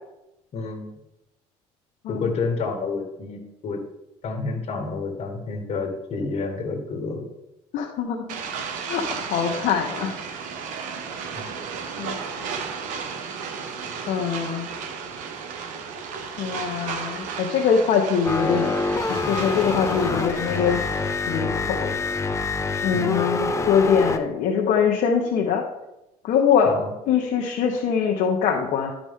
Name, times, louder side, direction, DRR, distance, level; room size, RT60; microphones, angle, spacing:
voice 1, 0.5-0.9 2.1-3.8 4.2-7.2 11.3-11.5 22.9-23.3 26.6-26.9, left 4 dB, 50° left, 4 dB, 1.9 m, -29 dB
voice 2, 7.7-8.3 8.9-9.0 9.3-10.1 12.0-12.1 14.1-14.7 16.4-18.8 19.1-20.8 21.3-21.9 22.8-25.6 26.2-26.7 27.1-28.9, left 7 dB, 65° left, 0 dB, 1.0 m, -23 dB
sound 1, 8.3-21.3, right 6 dB, 70° right, 1.1 m, -34 dB
sound 2, 18.2-24.2, left 3 dB, 20° left, 0.7 m, -26 dB
12.0 x 5.0 x 3.7 m, 0.92 s
supercardioid pair, 90°, 13 cm